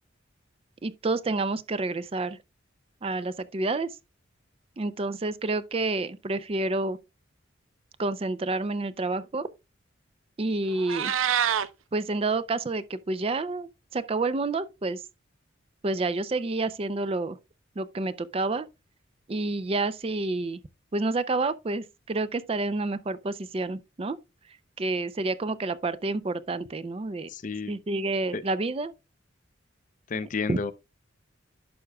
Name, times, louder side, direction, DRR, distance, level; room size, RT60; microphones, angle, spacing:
voice 1, 0.8-2.4 3.0-3.9 4.8-7.0 8.0-9.5 10.4-11.1 11.9-15.0 15.8-17.4 17.8-18.7 19.3-20.6 20.9-24.2 24.8-27.3 27.7-28.9 30.5-30.6, right 2 dB, 30° right, 0.4 m, -29 dB
Meow, 10.7-11.7, right 9 dB, 85° right, 0.5 m, -26 dB
voice 2, 27.3-27.8 28.3-28.4 30.1-30.7, left 4 dB, 40° left, 0.5 m, -31 dB
11.0 x 5.9 x 2.2 m
head